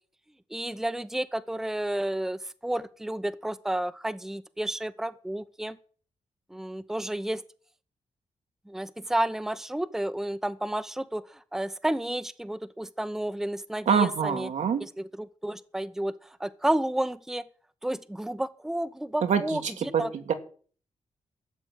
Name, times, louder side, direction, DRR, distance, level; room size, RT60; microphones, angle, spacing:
voice 1, 0.5-5.8 6.5-7.4 8.7-11.2 11.5-14.5 14.8-16.1 16.4-17.4 17.8-20.1, right 1 dB, 5° right, 11 dB, 0.8 m, -31 dB
voice 2, 13.9-14.8 19.2-19.4 19.9-20.3, right 7 dB, 80° right, 6 dB, 2.0 m, -24 dB
13.0 x 7.6 x 9.3 m, 0.44 s
wide cardioid pair, 140°, 12 cm